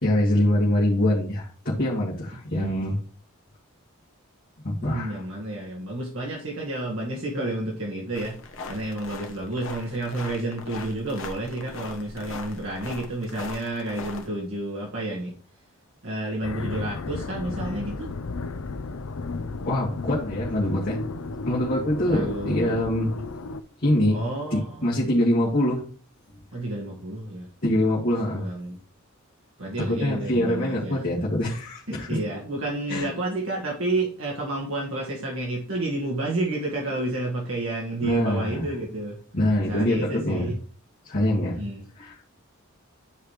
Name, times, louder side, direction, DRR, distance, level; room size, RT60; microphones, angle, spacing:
voice 1, 0.0-3.0 4.6-5.2 19.6-21.0 21.5-23.1 23.8-24.2 24.5-25.8 27.6-28.5 29.9-32.1 32.9-33.1 38.0-38.7 39.3-40.5 41.0-41.6 42.0-42.2, left 1 dB, 45° left, -7 dB, 2.0 m, -24 dB
voice 2, 2.5-2.8 4.8-8.4 8.7-15.3 16.0-18.1 22.1-22.8 24.1-24.9 26.5-27.5 28.4-28.8 29.6-31.0 31.9-39.2 39.6-40.6 41.5-41.8, right 2 dB, 70° right, -2 dB, 1.8 m, -30 dB
sound 1, 8.1-14.3, left 4 dB, 65° left, 1.2 m, -40 dB
sound 2, 16.4-23.6, left 3 dB, 90° left, 0.6 m, -34 dB
11.0 x 4.9 x 3.2 m, 0.43 s
head